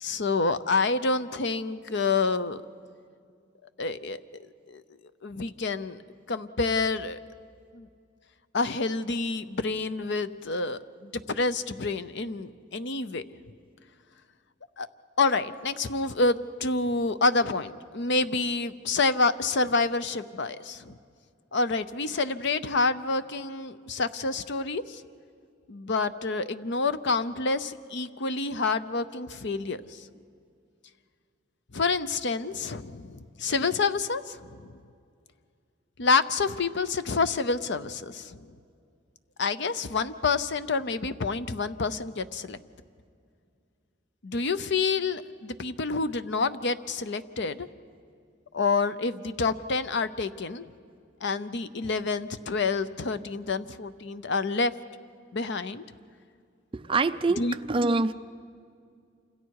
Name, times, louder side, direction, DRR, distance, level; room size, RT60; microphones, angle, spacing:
voice 1, 0.0-2.6 3.8-4.2 4.7-4.8 5.2-6.0 6.3-7.2 7.7-7.9 8.5-13.2 14.8-14.9 15.2-21.0 21.5-25.0 25.7-30.0 31.7-34.8 36.0-38.5 39.4-42.6 44.2-47.7 48.5-50.7 51.2-54.7 55.3-55.8 57.4-57.6, left 3 dB, 60° left, 13 dB, 0.7 m, -28 dB
voice 2, 56.7-58.1, right 3 dB, 25° right, 10 dB, 0.5 m, -25 dB
28.0 x 26.5 x 4.8 m, 2.3 s
head